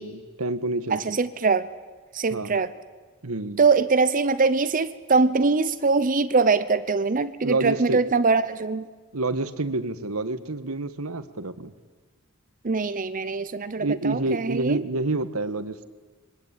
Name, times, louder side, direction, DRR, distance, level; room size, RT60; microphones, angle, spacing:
voice 1, 0.0-1.0 2.3-2.6 3.2-3.6 7.4-8.0 9.1-11.7 13.8-15.8, right 2 dB, 90° right, 11 dB, 1.6 m, -28 dB
voice 2, 0.9-1.7 2.1-2.7 3.6-8.9 12.6-14.8, right 4 dB, 40° right, 13 dB, 0.8 m, -22 dB
26.5 x 23.5 x 9.1 m, 1.4 s
head